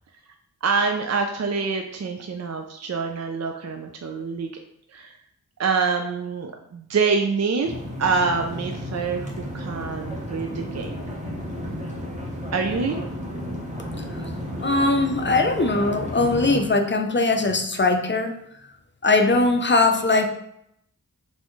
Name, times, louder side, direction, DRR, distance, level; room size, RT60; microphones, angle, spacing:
voice 1, 0.6-4.5 4.9-5.2 5.6-11.0 12.5-13.0, right 4 dB, 45° right, 4 dB, 0.4 m, -26 dB
sound 1, 7.6-16.6, equal, 20° right, 1.0 m, -32 dB
voice 2, 14.6-18.3 19.0-20.3, left 3 dB, 30° left, 6 dB, 0.5 m, -20 dB
4.2 x 3.5 x 3.1 m, 0.77 s
wide cardioid pair, 55°, 39 cm